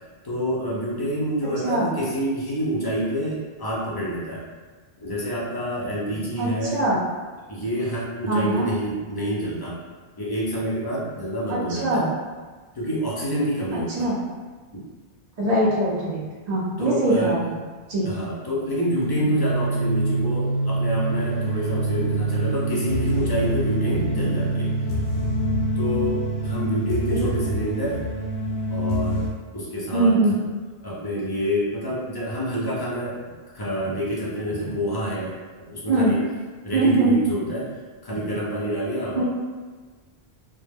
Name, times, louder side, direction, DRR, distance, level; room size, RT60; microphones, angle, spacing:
voice 1, 0.2-4.4 5.0-6.8 7.5-9.8 10.2-12.1 12.7-14.1 14.7-14.8 16.8-17.4 18.0-24.7 25.8-28.0 28.7-29.2 29.5-30.2 30.8-33.2 33.5-35.4 35.6-36.3 36.6-37.7 38.0-39.2, equal, 35° left, -6 dB, 0.4 m, -27 dB
voice 2, 6.4-7.0 8.3-8.7 11.5-12.1 13.7-14.2 15.4-17.6 17.9-18.1 27.1-27.3 29.9-30.3 35.9-36.1 36.7-37.2 39.1-39.2, right 2 dB, 50° right, -6 dB, 0.6 m, -22 dB
sound 1, 19.0-29.3, right 1 dB, 85° left, 0.9 m, -25 dB
2.1 x 2.0 x 3.3 m, 1.4 s
omnidirectional pair, 1.1 m